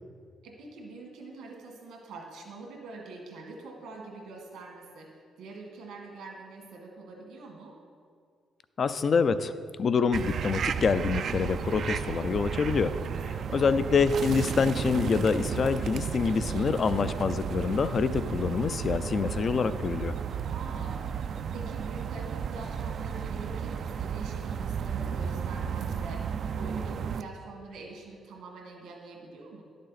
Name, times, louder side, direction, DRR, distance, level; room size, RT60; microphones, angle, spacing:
voice 1, 0.4-5.1 5.4-7.8 13.1-13.7 16.3-16.7 20.5-29.6, right 3 dB, 85° right, 0 dB, 1.8 m, -44 dB
voice 2, 8.8-9.5 9.8-13.0 13.5-20.1, left 5 dB, 45° left, 13 dB, 0.4 m, -26 dB
sound 1, 10.1-27.2, right 7 dB, 60° right, 0.3 m, -33 dB
11.0 x 6.5 x 4.1 m, 2.1 s
cardioid pair, 90°, 0 cm